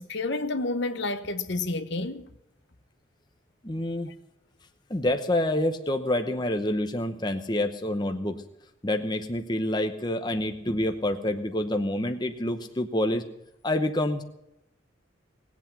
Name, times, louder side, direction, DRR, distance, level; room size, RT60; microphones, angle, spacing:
voice 1, 0.0-2.3, left 2 dB, 60° left, 1.0 m, -30 dB
voice 2, 3.6-4.1 4.9-8.4 8.8-13.2 13.6-14.2, left 1 dB, 20° left, 0.8 m, -27 dB
19.5 x 8.3 x 7.3 m
head